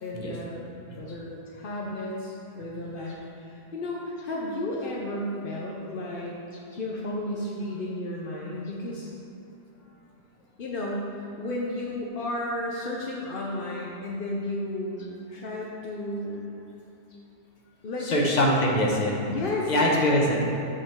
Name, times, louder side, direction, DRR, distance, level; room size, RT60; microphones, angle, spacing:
voice 1, 0.0-6.3 6.8-9.1 10.6-16.5 17.8-18.5 19.3-20.0, left 1 dB, 60° left, -3 dB, 0.6 m, -33 dB
voice 2, 18.0-19.2 19.7-20.3, left 1 dB, 30° left, -2 dB, 0.9 m, -22 dB
7.5 x 3.9 x 6.4 m, 2.9 s
omnidirectional pair, 1.8 m